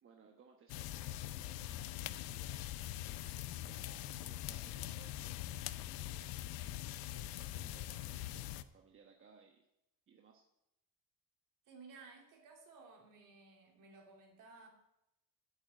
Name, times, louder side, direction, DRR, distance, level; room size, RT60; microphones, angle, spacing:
voice 1, 0.0-3.4 3.7-6.4 7.1-9.7 10.1-10.4, right 6 dB, 35° right, 2 dB, 1.2 m, -63 dB
sound 1, 0.7-8.6, left 13 dB, 80° left, 0.7 m, -43 dB
voice 2, 11.7-14.7, right 4 dB, 60° right, 1 dB, 3.1 m, -57 dB
8.6 x 7.7 x 8.7 m, 0.87 s
cardioid pair, 145°, 36 cm